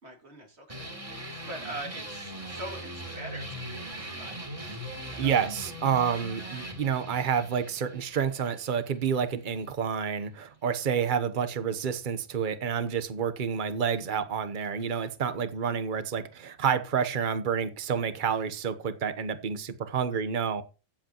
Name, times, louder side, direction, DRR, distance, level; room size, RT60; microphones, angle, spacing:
voice 1, 0.0-4.4 5.0-5.5, right 1 dB, 85° right, 2.8 m, -43 dB
sound 1, 0.7-9.7, right 1 dB, 30° right, 3.0 m, -40 dB
voice 2, 5.2-20.6, right 7 dB, 50° right, 1.0 m, -29 dB
16.0 x 7.8 x 3.0 m
omnidirectional pair, 1.1 m